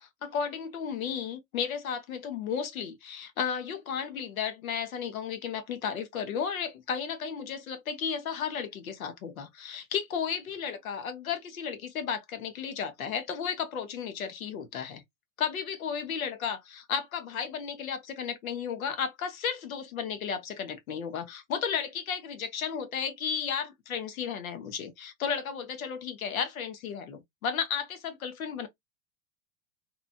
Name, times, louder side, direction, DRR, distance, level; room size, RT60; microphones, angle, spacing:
voice 1, 0.0-15.0 15.4-28.7, left 7 dB, 90° left, 0.9 m, -34 dB
2.9 x 2.4 x 2.4 m
hypercardioid pair, 110°, 41 cm